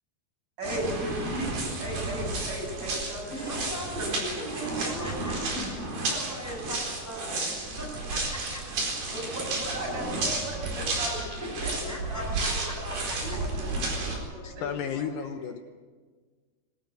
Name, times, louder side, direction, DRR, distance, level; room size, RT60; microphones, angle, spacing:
voice 1, 0.6-3.7 3.9-5.1 5.5-5.7 9.1-13.0 13.2-14.7, right 1 dB, 25° right, 0 dB, 7.2 m, -37 dB
sound 1, 0.6-14.2, right 2 dB, 50° right, 5.9 m, -32 dB
voice 2, 3.3-5.4 6.1-8.9 11.4-13.2, equal, 5° left, -3 dB, 7.3 m, -40 dB
voice 3, 14.4-15.6, left 7 dB, 85° left, 6 dB, 2.0 m, -33 dB
25.0 x 13.5 x 9.2 m, 1.5 s
omnidirectional pair, 5.4 m